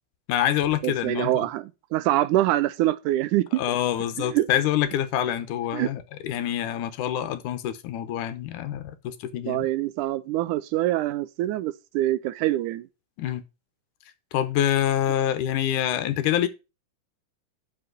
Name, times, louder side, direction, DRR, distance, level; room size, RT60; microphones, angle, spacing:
voice 1, 0.3-1.5 3.6-9.7 13.2-13.4 14.3-16.5, left 11 dB, 80° left, 2.3 m, -26 dB
voice 2, 0.8-3.6 4.2-4.5 5.7-5.9 9.5-12.9, right 15 dB, 80° right, 2.1 m, -25 dB
7.8 x 5.9 x 6.2 m
omnidirectional pair, 3.7 m